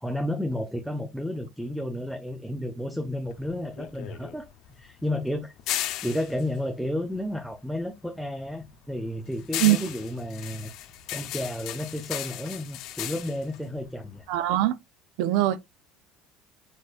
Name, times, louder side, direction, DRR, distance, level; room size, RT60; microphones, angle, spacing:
voice 1, 0.0-4.5 4.7-5.5 6.0-10.7 11.1-14.2, left 1 dB, ahead, 0.9 m, -32 dB
sound 1, 3.3-7.8 8.1-14.6, left 13 dB, 65° left, 1.0 m, -36 dB
voice 2, 14.3-14.8 15.2-15.6, right 15 dB, 75° right, 0.7 m, -21 dB
6.4 x 5.9 x 2.5 m
supercardioid pair, 105°, 0 cm